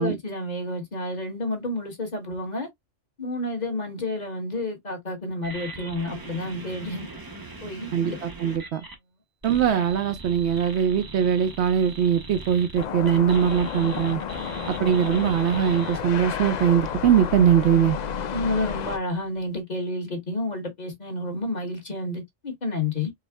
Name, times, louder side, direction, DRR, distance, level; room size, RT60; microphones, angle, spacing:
voice 1, 0.0-2.7 3.2-7.1 7.6-8.2 18.3-23.1, left 2 dB, 40° left, 1.4 m, -30 dB
sound 1, 5.4-9.0 9.4-16.0, right 3 dB, 25° right, 0.6 m, -40 dB
voice 2, 7.9-8.8 9.4-14.2 14.7-18.0, right 8 dB, 70° right, 0.8 m, -21 dB
sound 2, 12.8-19.0, left 7 dB, 60° left, 0.4 m, -31 dB
4.7 x 2.1 x 3.5 m
omnidirectional pair, 1.2 m